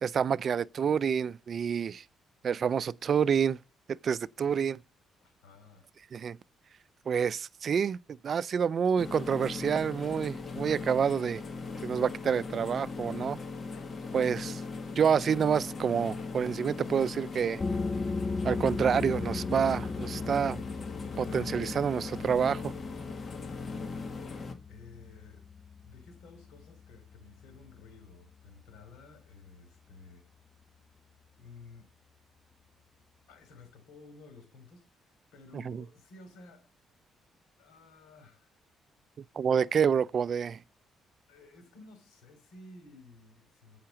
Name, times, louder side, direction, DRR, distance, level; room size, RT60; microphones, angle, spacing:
voice 1, 0.0-2.0 2.4-3.6 3.9-4.8 6.1-6.4 7.1-8.0 8.2-11.4 11.8-13.4 14.1-14.6 15.0-17.6 18.4-20.6 21.2-22.7 35.5-35.8 39.4-40.6, right 7 dB, 50° right, 0.4 m, -28 dB
voice 2, 5.2-5.9 24.7-25.5 25.8-30.3 31.4-31.9 33.3-36.7 37.6-38.5 39.6-39.9 41.3-43.8, left 3 dB, 90° left, 3.0 m, -54 dB
sound 1, 9.0-24.5, left 4 dB, 45° left, 1.6 m, -39 dB
sound 2, 17.6-29.0, left 4 dB, 30° left, 0.4 m, -38 dB
8.7 x 5.8 x 5.7 m
cardioid pair, 90°, 0 cm